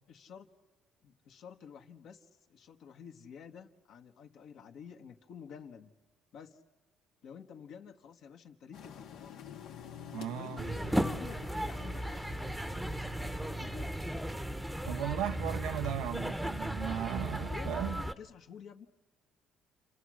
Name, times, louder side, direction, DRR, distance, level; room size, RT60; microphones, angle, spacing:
voice 1, 0.1-0.5 1.0-5.9 6.3-6.6 7.2-9.4 10.1-10.7 11.0-14.4 14.9-15.8 17.4-18.9, left 7 dB, 65° left, 1.7 m, -50 dB
sound 1, 8.7-13.9, left 8 dB, 80° left, 1.8 m, -49 dB
voice 2, 10.1-10.7 14.8-18.0, right 12 dB, 85° right, 0.8 m, -36 dB
sound 2, 10.6-18.1, equal, 5° right, 1.0 m, -36 dB
29.5 x 27.5 x 6.4 m
cardioid pair, 100°, 0 cm